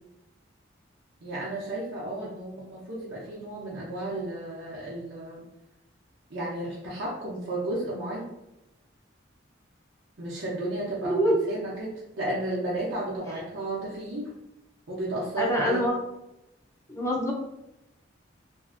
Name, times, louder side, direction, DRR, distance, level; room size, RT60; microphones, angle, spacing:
voice 1, 1.2-5.4 6.3-8.3 10.2-14.3 14.9-15.8, right 1 dB, 70° right, -6 dB, 0.6 m, -33 dB
voice 2, 11.0-11.4 15.4-16.0 16.9-17.3, equal, 15° left, -1 dB, 0.4 m, -25 dB
2.6 x 2.4 x 2.4 m, 0.91 s
head